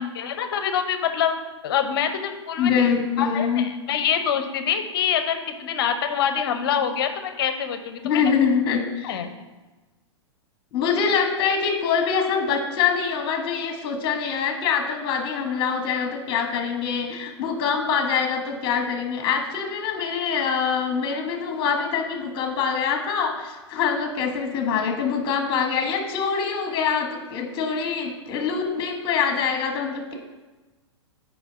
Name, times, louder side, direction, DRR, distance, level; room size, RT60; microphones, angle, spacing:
voice 1, 0.0-1.3 1.6-2.7 3.2-8.2 9.0-9.3, left 8 dB, 50° left, 8 dB, 0.8 m, -25 dB
voice 2, 2.6-3.7 8.0-9.2 10.7-30.2, left 6 dB, 30° left, 4 dB, 1.4 m, -24 dB
7.0 x 5.0 x 5.3 m, 1.2 s
figure-of-eight pair, 105°, 15 cm